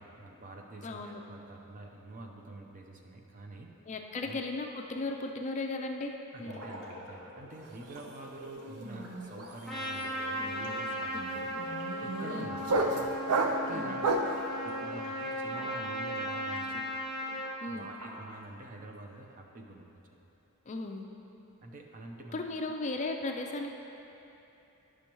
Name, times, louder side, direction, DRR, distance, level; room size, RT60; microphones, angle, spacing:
voice 1, 0.0-3.7 4.2-4.4 6.3-13.1 13.4-14.1 14.4-16.9 17.7-20.2 21.6-22.4, right 2 dB, 35° right, 1 dB, 0.6 m, -47 dB
voice 2, 0.8-1.2 3.9-6.1 6.4-6.5 12.3-12.6 13.7-14.0 17.6-17.9 20.7-21.0 22.3-23.7, left 2 dB, 30° left, 3 dB, 0.4 m, -36 dB
sound 1, 6.4-13.0 13.3-13.8 14.1-15.8 16.1-18.3, equal, 65° right, 1.2 m, -50 dB
sound 2, 7.6-7.9 8.2-14.4, right 2 dB, 85° right, 0.6 m, -32 dB
Trumpet, 9.7-17.5, equal, ahead, 0.8 m, -36 dB
10.0 x 6.2 x 3.0 m, 2.9 s
head